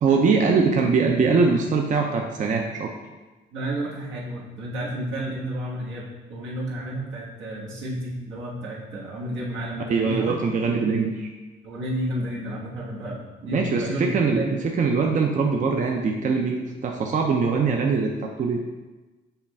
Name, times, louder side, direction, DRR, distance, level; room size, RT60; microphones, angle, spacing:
voice 1, 0.0-2.9 9.9-11.3 13.5-18.6, right 4 dB, 40° right, 2 dB, 0.5 m, -22 dB
voice 2, 3.5-10.8 11.6-14.6, right 1 dB, 80° right, -5 dB, 1.3 m, -31 dB
5.5 x 2.3 x 4.0 m, 1.2 s
cardioid pair, 90°, 20 cm